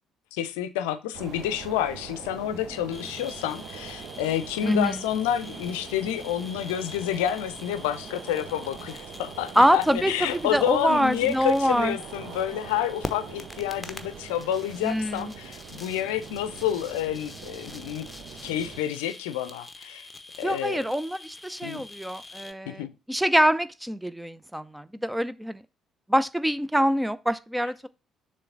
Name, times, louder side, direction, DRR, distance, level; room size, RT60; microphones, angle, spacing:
voice 1, 0.3-18.1 18.4-20.1 20.4-20.8 21.6-21.8 22.7-22.9, left 11 dB, 70° left, 0.5 m, -29 dB
sound 1, 1.1-18.8, right 7 dB, 55° right, 0.7 m, -43 dB
sound 2, 2.9-22.5, left 2 dB, 10° left, 0.9 m, -44 dB
voice 2, 4.6-5.0 9.6-12.0 14.8-15.3 20.4-25.6 26.1-27.9, equal, 5° right, 0.5 m, -25 dB
6.9 x 3.2 x 5.6 m
figure-of-eight pair, 45°, 0 cm